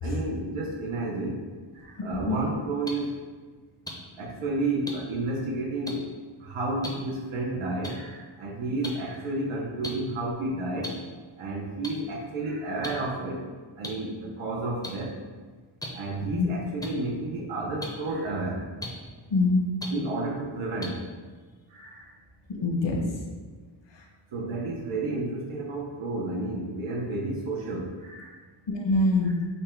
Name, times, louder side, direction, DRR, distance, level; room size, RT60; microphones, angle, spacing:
voice 1, 0.0-1.4 1.7-3.2 4.2-6.1 6.4-11.0 11.4-13.4 13.8-15.2 15.9-18.6 19.9-21.0 21.7-22.1 24.3-28.3 29.2-29.3, right 2 dB, 85° right, -3 dB, 0.8 m, -31 dB
voice 2, 2.0-2.3 16.3-16.5 19.3-19.6 22.5-23.0 23.9-24.0 28.7-29.3, left 2 dB, 60° left, 1 dB, 0.9 m, -24 dB
sound 1, 2.9-3.0 3.9-4.0 4.9-5.0 5.9-6.0 6.8-6.9 7.8-7.9 8.8-8.9 9.8-9.9 10.8-10.9 11.8-11.9 12.8-12.9 13.8-13.9 14.8-14.9 15.8-15.9 16.8-16.9 17.8-17.9 18.8-18.9 19.8-19.9 20.8-20.9, left 1 dB, 10° left, 0.5 m, -34 dB
5.5 x 2.2 x 4.4 m, 1.4 s
wide cardioid pair, 140°, 48 cm